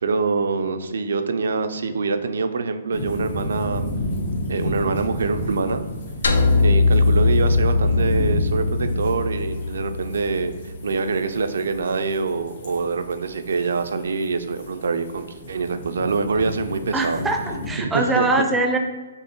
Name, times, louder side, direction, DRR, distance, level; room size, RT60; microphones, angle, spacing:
voice 1, 0.0-4.0 4.5-5.8 6.6-17.2 17.8-18.3, right 4 dB, 75° right, 9 dB, 0.3 m, -25 dB
sound 1, 2.9-17.7, left 1 dB, 65° left, 1.1 m, -31 dB
sound 2, 6.2-10.6, left 3 dB, 85° left, 0.4 m, -20 dB
voice 2, 16.9-18.8, right 2 dB, 10° right, 3 dB, 0.4 m, -22 dB
5.2 x 2.0 x 2.9 m, 1.3 s
hypercardioid pair, 135°, 0 cm